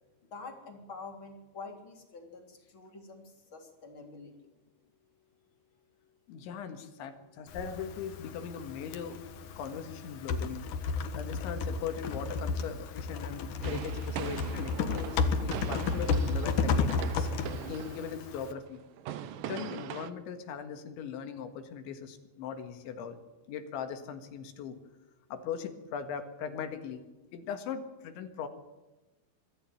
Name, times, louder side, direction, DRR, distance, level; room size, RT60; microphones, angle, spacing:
voice 1, 0.3-4.3, left 4 dB, 30° left, 3 dB, 3.5 m, -47 dB
voice 2, 6.3-9.2 9.6-10.6 11.1-17.3 17.6-18.8 19.5-23.2 23.5-24.8 25.3-27.0 27.3-28.5, left 7 dB, 75° left, 8 dB, 3.9 m, -39 dB
Typing, 7.5-18.5, left 4 dB, 60° left, 2.3 m, -33 dB
sound 1, 13.6-20.1, right 10 dB, 90° right, 1.9 m, -41 dB
23.5 x 14.0 x 9.1 m, 1.1 s
omnidirectional pair, 5.5 m